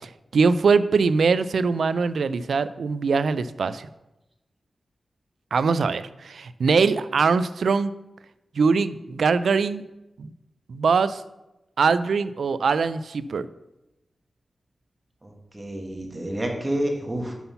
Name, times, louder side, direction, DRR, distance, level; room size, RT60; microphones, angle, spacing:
voice 1, 0.3-3.9 5.5-7.9 8.6-9.8 10.2-10.3 10.7-11.2 11.8-13.5, right 5 dB, 85° right, 15 dB, 0.3 m, -22 dB
voice 2, 15.2-17.3, right 1 dB, 25° right, 1 dB, 1.5 m, -29 dB
5.7 x 5.5 x 5.6 m, 0.96 s
wide cardioid pair, 75°, 0 cm